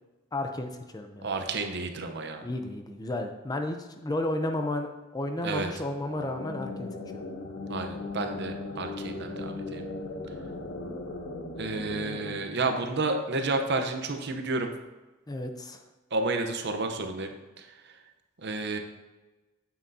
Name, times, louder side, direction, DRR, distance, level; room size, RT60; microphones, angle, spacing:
voice 1, 0.3-1.3 2.4-7.2 15.3-15.8, left 1 dB, 20° left, 5 dB, 0.5 m, -33 dB
voice 2, 1.2-2.5 5.4-5.7 7.7-9.9 11.6-14.7 16.1-17.3 17.6-17.9 18.4-18.8, right 3 dB, 55° right, 6 dB, 0.8 m, -31 dB
sound 1, 5.9-13.5, left 2 dB, 55° left, 0.9 m, -38 dB
8.9 x 7.5 x 2.7 m, 1.1 s
head